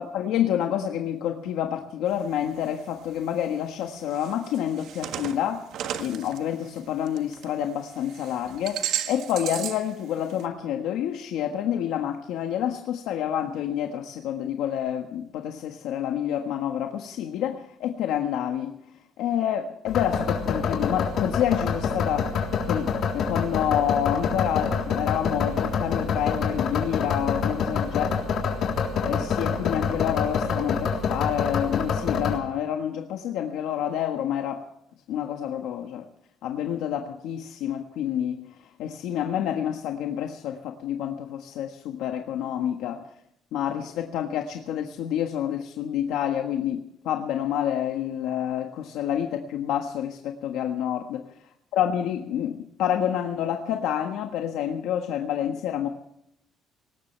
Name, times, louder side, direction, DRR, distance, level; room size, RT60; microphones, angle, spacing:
voice 1, 0.0-5.6 6.0-18.7 19.2-22.3 22.6-28.1 29.1-34.6 35.1-36.0 36.4-38.4 38.8-43.0 43.5-51.2 51.7-55.9, left 10 dB, 80° left, 3 dB, 1.5 m, -28 dB
sound 1, 2.1-2.7 3.2-3.3 4.0-7.5 7.8-9.9 10.2-10.4, right 10 dB, 65° right, 1.6 m, -34 dB
sound 2, 19.9-32.4, left 6 dB, 55° left, 3.6 m, -26 dB
20.5 x 19.0 x 3.4 m, 0.76 s
cardioid pair, 150°, 0 cm